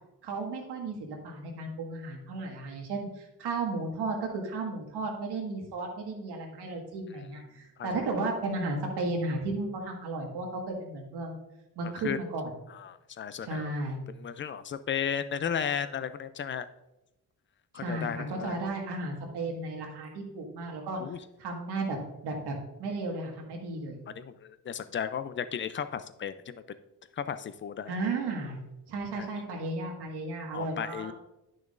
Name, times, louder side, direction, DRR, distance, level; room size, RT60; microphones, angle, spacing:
voice 1, 0.2-11.4 11.8-12.5 13.4-14.0 17.7-21.0 21.4-22.0 22.2-24.0 27.9-28.6 28.9-31.1, right 2 dB, 90° right, 1 dB, 1.8 m, -34 dB
voice 2, 11.8-12.2 12.7-13.7 14.2-16.7 17.7-18.6 21.0-21.2 24.1-26.8 27.1-27.9 29.1-29.3 30.5-31.1, left 8 dB, 30° left, 13 dB, 0.4 m, -34 dB
10.5 x 6.3 x 2.5 m, 0.94 s
cardioid pair, 115°, 39 cm